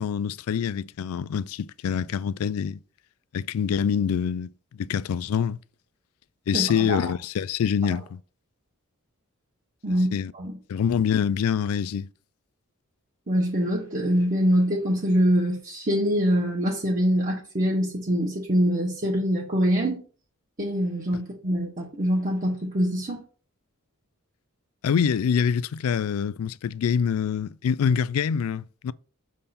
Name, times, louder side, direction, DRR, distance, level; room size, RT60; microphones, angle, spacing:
voice 1, 0.0-2.8 3.3-4.5 4.8-5.6 6.5-8.2 10.1-10.3 10.7-12.1 24.8-28.9, left 7 dB, 90° left, 0.3 m, -25 dB
voice 2, 6.5-7.1 9.8-10.5 13.3-20.0 20.6-23.2, equal, 40° right, 1.3 m, -24 dB
6.7 x 3.7 x 4.2 m
head